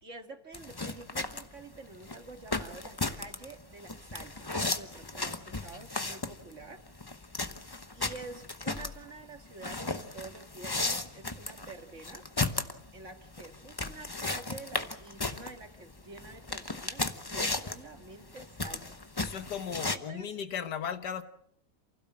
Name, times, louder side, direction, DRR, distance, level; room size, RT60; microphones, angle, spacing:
voice 1, 0.0-6.8 7.9-12.3 12.9-19.0 19.9-20.3, right 3 dB, 45° right, 2.2 m, -48 dB
sound 1, 0.5-20.0, left 3 dB, 20° left, 0.8 m, -35 dB
voice 2, 5.5-5.8 19.2-21.2, left 8 dB, 75° left, 1.8 m, -37 dB
28.5 x 16.5 x 7.4 m
omnidirectional pair, 1.8 m